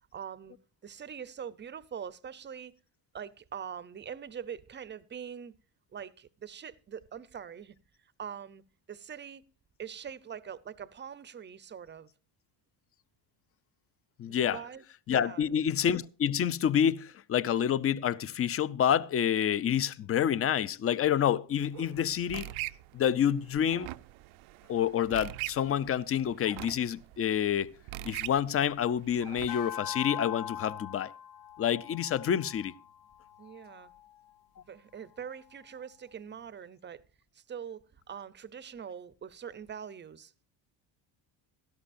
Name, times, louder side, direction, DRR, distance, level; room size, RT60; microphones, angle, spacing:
voice 1, 0.1-0.6 0.8-2.7 3.1-5.5 5.9-8.6 8.9-9.4 9.8-12.1 14.3-14.8 15.1-15.6 33.4-33.9 34.7-37.0 37.3-40.3, right 8 dB, 25° right, 0.6 m, -43 dB
voice 2, 14.2-14.6 15.1-22.5 22.9-23.9 24.7-27.7 28.0-31.1 31.6-32.7, left 9 dB, 30° left, 0.5 m, -28 dB
sound 1, 21.5-29.5, right 17 dB, 80° right, 0.6 m, -43 dB
sound 2, 29.5-34.1, left 10 dB, 90° left, 1.2 m, -42 dB
17.0 x 12.5 x 2.6 m
cardioid pair, 120°, 47 cm